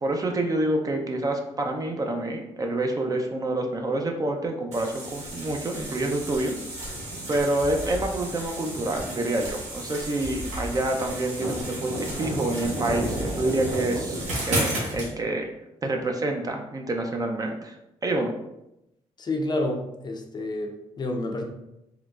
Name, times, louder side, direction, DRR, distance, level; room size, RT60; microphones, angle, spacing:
voice 1, 0.0-6.5 7.3-15.5 15.8-17.8 18.0-18.3, right 2 dB, 30° right, 3 dB, 0.5 m, -27 dB
sound 1, 4.7-15.1, right 1 dB, 80° right, 1.0 m, -32 dB
voice 2, 19.2-21.4, left 2 dB, 35° left, 3 dB, 0.5 m, -29 dB
3.7 x 2.0 x 2.3 m, 0.86 s
cardioid pair, 70°, 12 cm